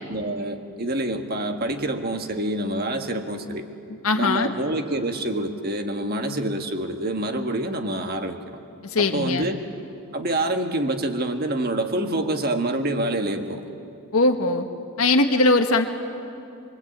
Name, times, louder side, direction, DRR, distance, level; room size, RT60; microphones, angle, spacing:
voice 1, 0.1-3.7 4.2-8.4 9.0-9.6 10.1-13.6, right 1 dB, 45° right, 5 dB, 1.6 m, -26 dB
voice 2, 4.0-4.5 8.8-9.5 14.1-14.6 15.0-15.9, left 2 dB, 85° left, 4 dB, 1.4 m, -20 dB
24.5 x 23.0 x 8.7 m, 2.6 s
head